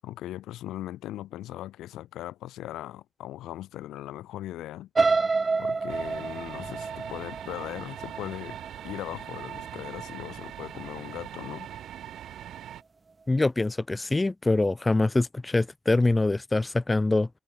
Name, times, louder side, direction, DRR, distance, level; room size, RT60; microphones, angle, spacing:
voice 1, 0.0-4.9 5.6-11.7, left 14 dB, 85° left, 3.8 m, -39 dB
sound 1, 5.0-8.9 9.4-9.7 10.0-10.1, right 4 dB, 30° right, 1.3 m, -28 dB
sound 2, 5.9-12.8, right 11 dB, 70° right, 5.1 m, -41 dB
voice 2, 13.3-17.3, left 2 dB, 20° left, 2.9 m, -24 dB
cardioid pair, 90°, 0 cm